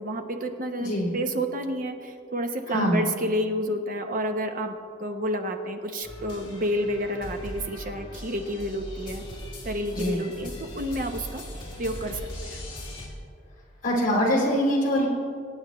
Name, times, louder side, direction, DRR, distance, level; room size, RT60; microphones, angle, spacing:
voice 1, 0.0-4.7 5.0-9.2 9.6-11.4 11.8-12.6, equal, 45° right, 5 dB, 0.9 m, -30 dB
voice 2, 0.8-1.1 2.7-3.0 9.9-10.2 13.8-15.1, equal, 40° left, -2 dB, 2.9 m, -23 dB
sound 1, 6.0-13.1, left 1 dB, 25° left, 2.9 m, -39 dB
23.5 x 9.1 x 3.1 m, 2.5 s
head